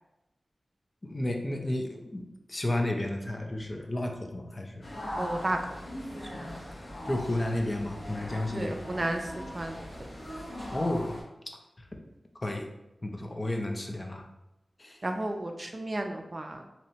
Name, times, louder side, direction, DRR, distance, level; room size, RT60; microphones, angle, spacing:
voice 1, 1.0-2.2 2.5-4.7 7.1-8.7 10.7-11.1 12.4-12.6 13.0-14.2 14.8-15.0, left 1 dB, 35° left, 3 dB, 0.4 m, -32 dB
sound 1, 4.8-11.2, equal, 55° left, 0.7 m, -40 dB
voice 2, 5.2-5.6 6.3-6.6 8.5-9.2 9.5-10.1 15.0-16.6, right 1 dB, 40° right, 4 dB, 0.3 m, -33 dB
2.7 x 2.1 x 2.7 m, 0.94 s
wide cardioid pair, 60°, 0 cm